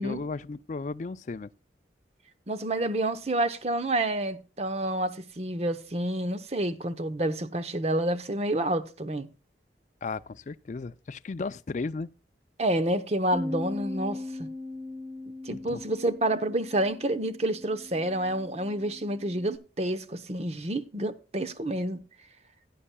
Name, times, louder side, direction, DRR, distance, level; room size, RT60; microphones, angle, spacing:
voice 1, 0.0-1.5 10.0-12.1 15.5-15.8, left 3 dB, 40° left, 0.4 m, -35 dB
voice 2, 2.5-9.3 12.6-14.5 15.4-22.0, right 1 dB, 35° right, 0.8 m, -29 dB
Bass guitar, 13.3-19.6, left 2 dB, 5° left, 2.7 m, -40 dB
16.5 x 9.6 x 2.2 m
head